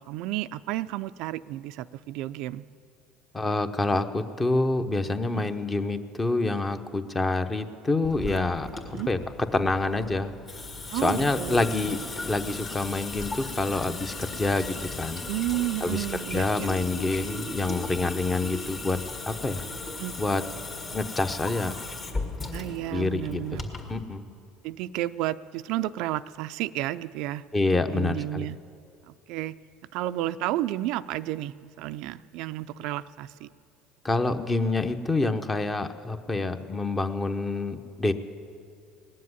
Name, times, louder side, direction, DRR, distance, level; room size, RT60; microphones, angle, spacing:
voice 1, 0.0-2.6 5.3-5.4 8.9-9.1 10.9-12.0 15.3-16.7 20.0-20.1 22.5-23.6 24.6-27.4 27.9-28.6 29.1-29.6 29.9-33.5, right 15 dB, 70° right, 13 dB, 0.4 m, -32 dB
voice 2, 3.3-8.7 9.1-9.2 9.5-10.3 11.0-12.0 12.3-15.2 15.8-16.0 16.3-19.0 19.3-19.6 20.2-20.4 20.9-21.7 22.9-23.4 23.9-24.2 27.5-28.5 34.0-38.1, left 3 dB, 20° left, 9 dB, 0.9 m, -27 dB
Water tap faucet / Sink (filling or washing) / Drip, 8.0-24.0, left 3 dB, 35° left, 2.0 m, -37 dB
19.0 x 7.6 x 9.6 m, 2.4 s
supercardioid pair, 100°, 0 cm